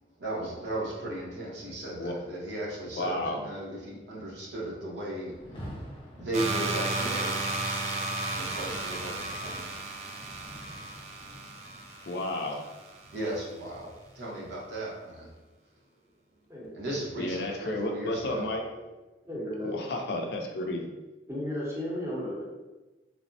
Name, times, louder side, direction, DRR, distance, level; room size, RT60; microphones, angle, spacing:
voice 1, 0.2-5.3 6.2-7.4 8.3-9.8 10.7-10.9 11.3-11.5 13.1-15.3 16.7-18.5, right 1 dB, 80° right, -4 dB, 0.8 m, -36 dB
voice 2, 2.9-3.4 12.1-12.6 17.2-18.6 19.6-20.9, left 2 dB, 60° left, 2 dB, 0.4 m, -32 dB
Rain, 5.2-14.3, equal, 25° left, 0.7 m, -48 dB
sound 1, 6.3-13.1, right 2 dB, 35° right, 0.3 m, -34 dB
voice 3, 19.2-19.7 21.3-22.4, left 1 dB, 15° right, -6 dB, 0.7 m, -34 dB
3.2 x 2.0 x 2.6 m, 1.1 s
head